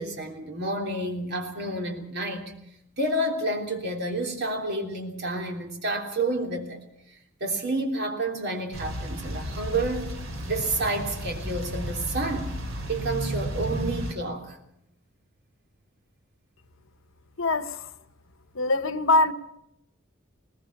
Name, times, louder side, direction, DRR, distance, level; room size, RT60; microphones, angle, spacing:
voice 1, 0.0-2.5 3.0-6.8 7.4-10.1 10.4-12.6 12.9-14.6, right 2 dB, 55° right, 3.3 m, -29 dB
sound 1, 8.7-14.1, equal, 80° right, 2.8 m, -33 dB
voice 2, 17.4-17.9 18.5-19.3, left 2 dB, 70° left, 1.1 m, -23 dB
20.5 x 20.0 x 7.2 m
head